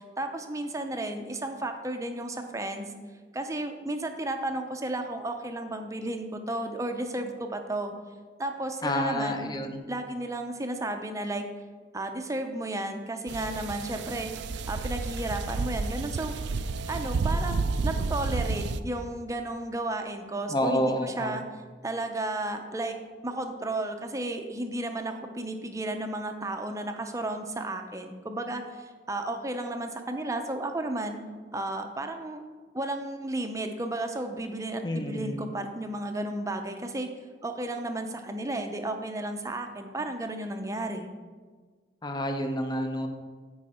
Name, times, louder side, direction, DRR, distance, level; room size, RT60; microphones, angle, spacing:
voice 1, 0.0-2.9 3.3-7.9 8.4-9.5 9.9-11.5 11.9-14.3 14.7-16.3 16.9-21.4 21.8-23.0 23.2-31.2 31.5-32.4 32.7-37.1 37.4-41.1, right 1 dB, 20° right, 5 dB, 0.6 m, -33 dB
voice 2, 8.8-9.8 20.5-21.4 34.8-35.5 42.0-43.1, equal, 25° left, 5 dB, 0.7 m, -29 dB
sound 1, 13.3-18.8, right 3 dB, 75° right, 0.4 m, -31 dB
13.5 x 4.8 x 4.3 m, 1.5 s
head